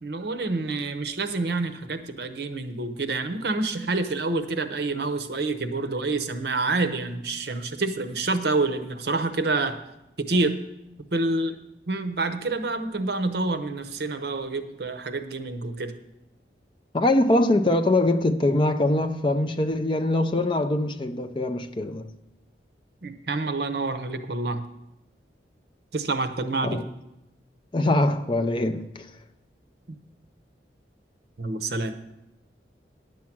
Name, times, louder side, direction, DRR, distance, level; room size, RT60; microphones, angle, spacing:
voice 1, 0.0-9.8 10.2-10.6 11.1-11.6 11.9-15.9 23.0-24.6 25.9-26.8 29.9-30.0 31.4-31.9, right 3 dB, 65° right, 0.8 m, -27 dB
voice 2, 16.9-22.1 26.6-26.9 27.7-29.2, left 1 dB, 25° left, 0.5 m, -23 dB
10.5 x 7.4 x 5.9 m
head